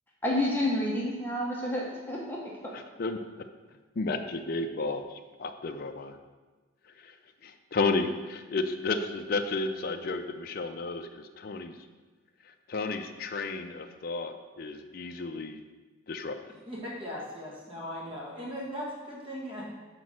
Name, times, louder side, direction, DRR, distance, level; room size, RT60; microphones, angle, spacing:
voice 1, 0.2-2.4, left 1 dB, 10° left, -4 dB, 1.0 m, -29 dB
voice 2, 2.7-3.2 4.0-5.0 5.4-6.2 7.4-11.8 12.7-15.6 16.1-16.4, left 3 dB, 45° left, 5 dB, 0.4 m, -32 dB
voice 3, 16.6-19.7, equal, 25° right, -5 dB, 1.7 m, -38 dB
6.1 x 4.6 x 6.2 m, 1.3 s
head